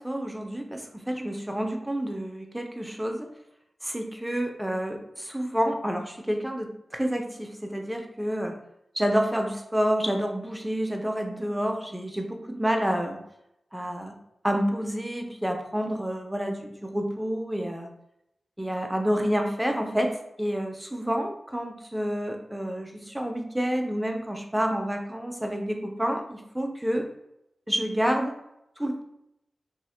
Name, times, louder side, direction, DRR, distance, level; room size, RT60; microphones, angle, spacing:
voice 1, 0.0-3.3 3.8-8.6 8.9-13.2 13.7-14.1 14.4-17.9 18.6-27.1 27.7-28.3 28.8-29.0, equal, 5° right, 3 dB, 0.4 m, -29 dB
2.4 x 2.1 x 3.6 m, 0.81 s
wide cardioid pair, 90°, 0 cm